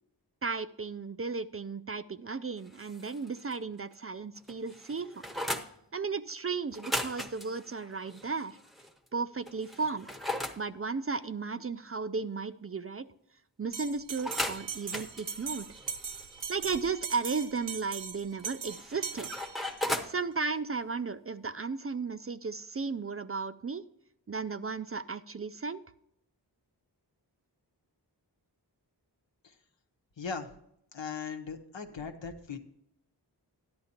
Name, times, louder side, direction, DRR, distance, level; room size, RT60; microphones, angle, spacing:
voice 1, 0.4-5.2 5.9-8.6 9.1-10.1 10.6-13.1 13.6-15.7 16.5-19.3 20.0-23.8 24.3-25.8, right 4 dB, 35° right, 13 dB, 0.4 m, -35 dB
sound 1, 2.7-3.6 3.9-4.0 4.4-5.7 6.7-8.9 9.5-10.6 14.2-16.4 18.4-20.2, left 1 dB, ahead, 0.8 m, -37 dB
Bell, 13.7-20.0, right 6 dB, 75° right, 0.8 m, -40 dB
voice 2, 30.2-30.5 30.9-32.6, left 5 dB, 80° left, 6 dB, 1.0 m, -38 dB
13.0 x 10.5 x 2.9 m, 0.76 s
wide cardioid pair, 55°, 44 cm